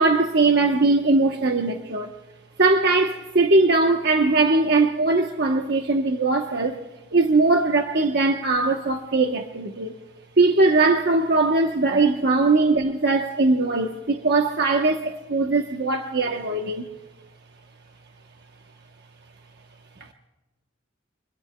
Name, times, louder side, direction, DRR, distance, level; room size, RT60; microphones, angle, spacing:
voice 1, 0.0-2.1 2.6-6.8 7.1-10.0 10.4-16.9, right 3 dB, 55° right, 1.0 m, -20 dB
27.5 x 21.5 x 2.2 m
head